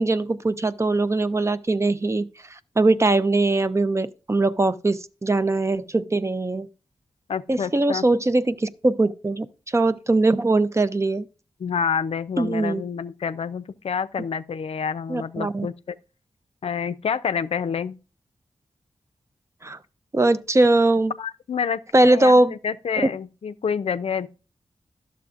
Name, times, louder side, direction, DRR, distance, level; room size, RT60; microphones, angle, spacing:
voice 1, 0.0-2.3 2.8-6.7 7.5-9.5 9.7-11.3 12.4-12.8 15.1-15.7 19.6-19.8 20.1-21.1 21.9-22.5, right 2 dB, 25° right, 0.5 m, -21 dB
voice 2, 7.3-8.0 11.6-15.7 16.6-18.0 21.2-24.3, left 6 dB, 65° left, 0.4 m, -28 dB
11.5 x 6.9 x 2.5 m
cardioid pair, 65°, 11 cm